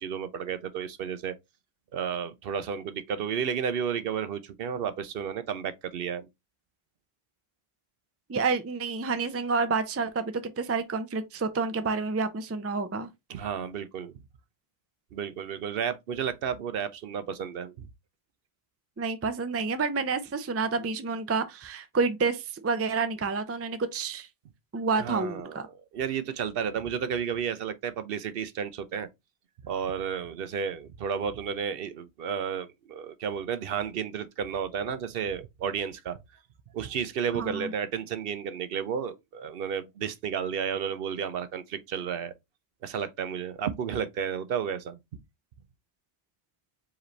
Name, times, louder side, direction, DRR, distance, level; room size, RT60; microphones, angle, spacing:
voice 1, 0.0-1.3 1.9-6.3 13.3-14.1 15.1-17.9 24.9-25.7 25.9-29.1 29.6-36.2 36.7-42.3 42.8-45.0, right 7 dB, 65° right, 0.7 m, -32 dB
voice 2, 8.3-13.1 19.0-24.3 24.7-25.7 37.3-37.7, right 4 dB, 25° right, 0.3 m, -29 dB
4.9 x 3.2 x 3.1 m
omnidirectional pair, 1.1 m